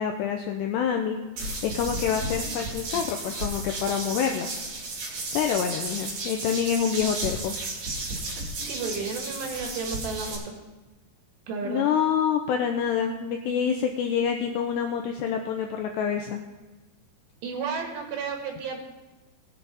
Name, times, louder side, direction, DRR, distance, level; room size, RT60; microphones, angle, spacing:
voice 1, 0.0-4.5 5.3-7.6 11.7-16.4, left 8 dB, 85° left, 4 dB, 2.4 m, -27 dB
sound 1, 1.4-10.3, right 2 dB, 45° right, 2.7 m, -33 dB
voice 2, 8.6-10.5 11.5-11.8 17.4-18.8, right 5 dB, 70° right, 3 dB, 3.2 m, -32 dB
19.5 x 6.9 x 4.1 m, 1.2 s
omnidirectional pair, 5.6 m